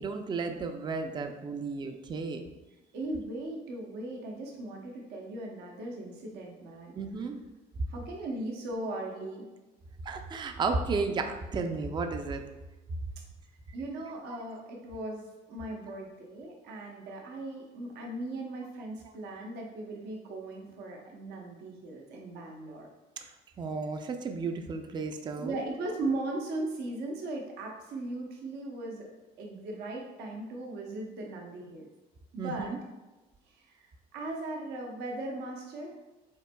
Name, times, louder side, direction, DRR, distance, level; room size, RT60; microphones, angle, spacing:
voice 1, 0.0-2.5 6.9-7.4 10.0-12.4 23.2-23.3 23.6-25.6 32.4-32.8, right 4 dB, 25° right, 6 dB, 0.4 m, -33 dB
voice 2, 2.9-7.0 7.9-9.5 13.7-22.9 25.4-29.1 29.4-31.9 32.3-32.7 33.4-36.0, right 2 dB, 75° right, 0 dB, 0.8 m, -38 dB
5.6 x 4.3 x 2.2 m, 1.1 s
cardioid pair, 110°, 17 cm